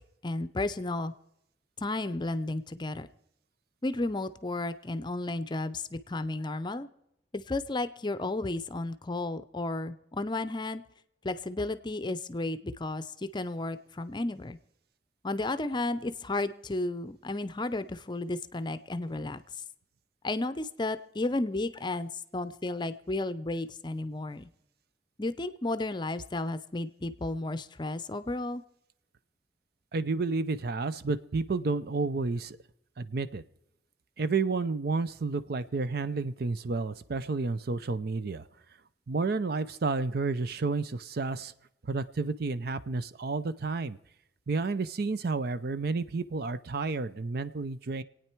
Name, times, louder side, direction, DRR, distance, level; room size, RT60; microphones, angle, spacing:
voice 1, 0.2-1.1 1.8-3.1 3.8-6.9 7.3-10.8 11.2-13.1 13.3-14.6 15.2-19.4 20.2-24.5 25.2-28.6, left 2 dB, 25° left, 13 dB, 0.6 m, -33 dB
voice 2, 29.9-32.6 33.0-33.4 34.2-38.4 39.1-41.5 41.9-44.0 44.5-48.0, right 3 dB, 60° right, 14 dB, 0.6 m, -31 dB
26.5 x 9.1 x 4.5 m, 0.79 s
head